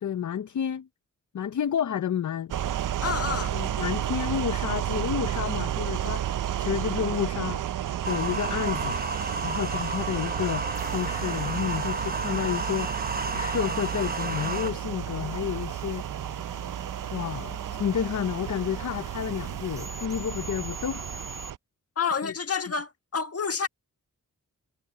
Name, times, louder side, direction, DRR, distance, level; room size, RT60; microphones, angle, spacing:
voice 1, 0.0-0.9 1.3-2.5 3.2-6.3 6.6-7.6 8.0-9.0 9.4-10.6 10.9-12.9 13.2-16.0 17.1-21.2 22.2-22.3, left 9 dB, 60° left, 0.7 m, -30 dB
sound 1, 2.5-21.6, right 11 dB, 70° right, 0.5 m, -32 dB
voice 2, 3.0-3.6 22.0-23.7, left 6 dB, 45° left, 1.5 m, -29 dB
sound 2, 8.0-14.7, right 3 dB, 30° right, 0.9 m, -32 dB
sound 3, 10.7-21.5, right 1 dB, 10° right, 2.4 m, -46 dB
wide cardioid pair, 170°, 33 cm